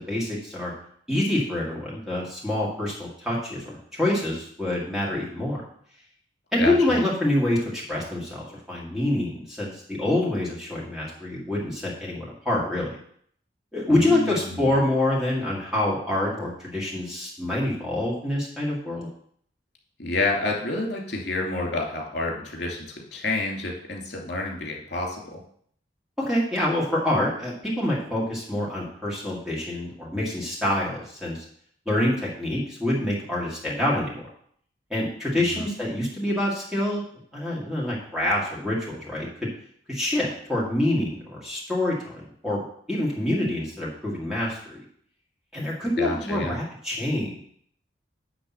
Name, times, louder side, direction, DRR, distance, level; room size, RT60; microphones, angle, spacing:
voice 1, 0.1-0.7 1.1-5.6 6.5-13.0 13.7-19.1 26.2-31.4 31.9-34.3 34.9-37.0 37.3-39.5 39.9-42.6 42.9-44.8 45.5-47.4, left 1 dB, 5° right, -6 dB, 1.9 m, -26 dB
voice 2, 6.6-7.0 13.9-14.7 20.0-25.4 35.3-35.7 46.0-46.6, left 2 dB, 70° left, -1 dB, 2.6 m, -29 dB
10.0 x 3.5 x 7.2 m, 0.62 s
head